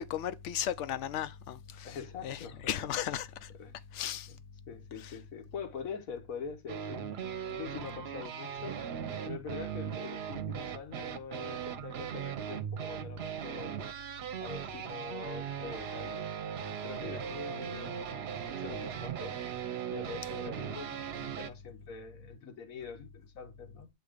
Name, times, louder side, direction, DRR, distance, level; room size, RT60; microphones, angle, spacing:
voice 1, 0.0-1.9 2.2-2.4 2.7-3.3 3.9-4.3, left 10 dB, 70° left, 0.8 m, -35 dB
voice 2, 1.8-3.2 3.6-3.8 4.7-7.1 7.5-8.8 9.3-13.8 14.4-16.3 16.8-19.4 19.9-23.9, left 6 dB, 90° left, 1.4 m, -44 dB
sound 1, 6.7-21.5, right 8 dB, 55° right, 0.8 m, -38 dB
7.8 x 2.7 x 4.9 m
omnidirectional pair, 1.4 m